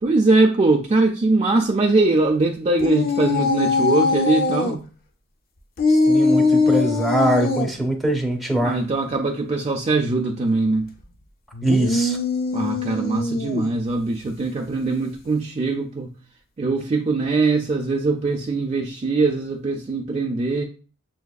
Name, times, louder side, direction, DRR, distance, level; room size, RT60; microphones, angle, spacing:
voice 1, 0.0-4.9 8.6-10.9 12.5-16.1 16.6-20.6, right 3 dB, 30° right, 0.3 m, -21 dB
sound 1, 2.8-4.8 5.8-7.7 11.5-13.8, left 3 dB, 45° left, 0.5 m, -21 dB
voice 2, 5.9-8.8 11.6-12.2, right 1 dB, ahead, 0.7 m, -22 dB
7.0 x 2.3 x 2.3 m
head